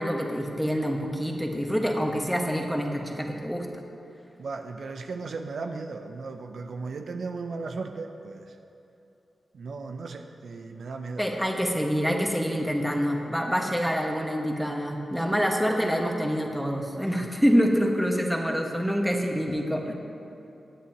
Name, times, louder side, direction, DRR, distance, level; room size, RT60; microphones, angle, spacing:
voice 1, 0.0-3.7 11.2-19.9, equal, ahead, 1 dB, 1.6 m, -26 dB
voice 2, 4.4-8.6 9.5-11.6 15.2-15.4 17.1-17.3, right 4 dB, 75° right, 5 dB, 0.6 m, -36 dB
18.5 x 8.4 x 3.0 m, 2.9 s
cardioid pair, 50°, 0 cm